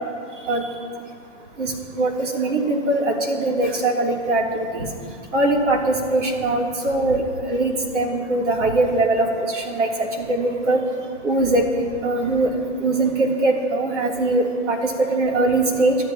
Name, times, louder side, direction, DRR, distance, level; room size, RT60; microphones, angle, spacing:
voice 1, 1.6-4.9 5.3-10.8 11.2-11.7 12.0-12.5 12.8-16.0, right 2 dB, 75° right, -1 dB, 3.3 m, -21 dB
29.0 x 12.5 x 3.0 m, 2.2 s
hypercardioid pair, 175°, 36 cm